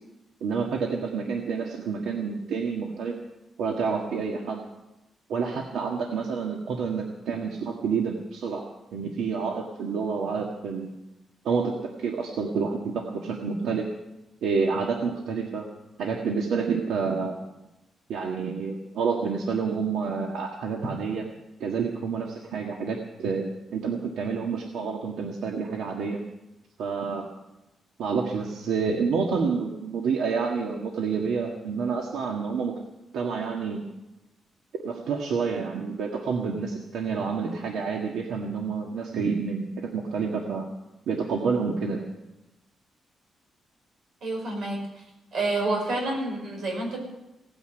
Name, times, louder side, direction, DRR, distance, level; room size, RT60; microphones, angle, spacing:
voice 1, 0.4-3.2 3.6-4.6 5.3-10.9 11.4-13.9 14.4-15.7 16.0-17.4 18.1-21.2 21.6-26.2 26.8-27.3 28.0-32.8 33.1-33.8 34.7-40.7 41.1-42.0, right 5 dB, 85° right, 1 dB, 1.7 m, -28 dB
voice 2, 44.2-44.8 45.3-47.0, right 2 dB, 55° right, 1 dB, 5.3 m, -28 dB
17.5 x 9.7 x 7.9 m, 0.97 s
wide cardioid pair, 180°, 0 cm